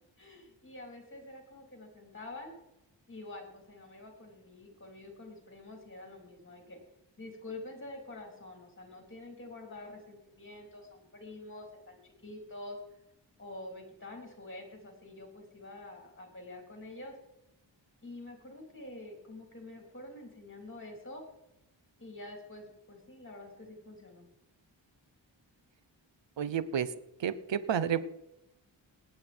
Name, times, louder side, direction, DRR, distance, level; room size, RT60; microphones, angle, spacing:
voice 1, 0.2-2.5 3.1-6.8 7.2-12.8 13.4-17.2 18.0-21.2 22.0-24.3, left 2 dB, 25° left, 2 dB, 3.7 m, -47 dB
voice 2, 26.4-26.9 27.2-28.1, right 8 dB, 70° right, 15 dB, 0.9 m, -30 dB
19.0 x 8.3 x 4.4 m, 0.90 s
wide cardioid pair, 85°, 46 cm